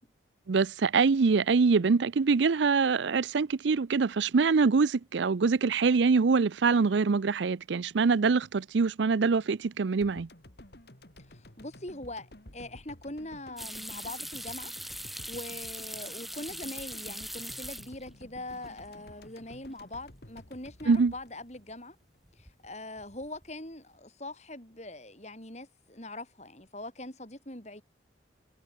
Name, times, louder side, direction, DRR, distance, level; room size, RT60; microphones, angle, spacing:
voice 1, 0.5-10.3 20.9-21.1, right 4 dB, 75° right, 0.5 m, -24 dB
sound 1, 10.0-22.3 22.6-22.7, left 1 dB, 55° left, 3.3 m, -52 dB
voice 2, 11.2-14.7 15.2-22.0 22.3-27.8, left 1 dB, 35° left, 5.8 m, -42 dB
sound 2, 13.6-18.2 18.5-19.1 19.5-19.6 22.3-22.7 23.0-23.5, equal, ahead, 2.1 m, -41 dB
head